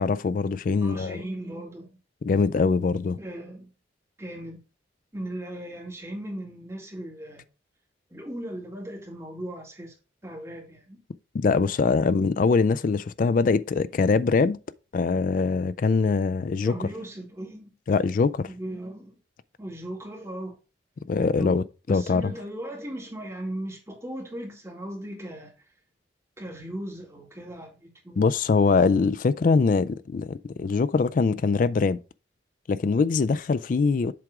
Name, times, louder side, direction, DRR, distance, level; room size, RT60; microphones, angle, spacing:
voice 1, 0.0-1.2 2.2-3.2 11.3-14.6 14.9-16.9 17.9-18.5 21.1-22.3 28.2-32.0 32.7-34.1, left 4 dB, 45° left, 0.3 m, -23 dB
voice 2, 0.8-1.9 3.2-3.7 4.2-4.6 5.1-7.4 8.1-9.9 10.2-11.0 16.6-17.7 18.5-19.1 19.6-20.5 21.4-21.6 21.9-25.5 26.4-28.2, right 1 dB, 15° right, 2.1 m, -37 dB
7.6 x 3.6 x 4.8 m
head